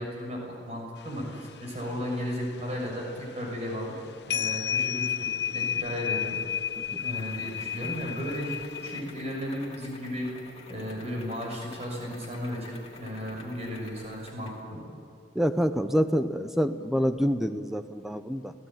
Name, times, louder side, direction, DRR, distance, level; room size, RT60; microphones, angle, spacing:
voice 1, 0.0-3.9 4.3-6.4 7.0-10.3 10.7-14.8, equal, 35° right, -1 dB, 6.7 m, -35 dB
sound 1, 1.0-1.8 2.1-2.5 2.8-3.0 3.7-4.0 4.3-9.0, left 9 dB, 60° left, 0.6 m, -31 dB
sound 2, 5.9-14.7, left 3 dB, 30° left, 2.5 m, -50 dB
voice 2, 15.3-18.5, equal, ahead, 9 dB, 0.8 m, -27 dB
28.0 x 17.0 x 9.1 m, 2.5 s
head